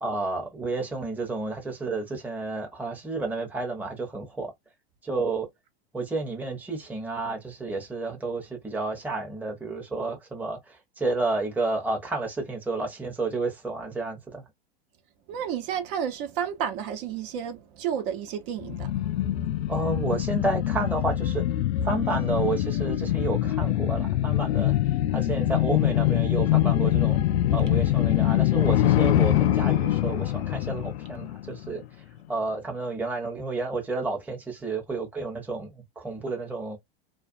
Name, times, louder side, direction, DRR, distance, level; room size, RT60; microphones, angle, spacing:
voice 1, 0.0-4.5 5.0-5.5 5.9-14.4 19.7-21.4 21.8-24.7 25.1-27.2 27.5-31.8 32.3-36.8, right 3 dB, 5° right, 0.8 m, -31 dB
voice 2, 15.3-19.3, right 8 dB, 55° right, 0.9 m, -32 dB
sound 1, 18.6-31.9 32.2-32.3, left 13 dB, 75° left, 0.5 m, -24 dB
2.4 x 2.3 x 2.4 m
hypercardioid pair, 115°, 32 cm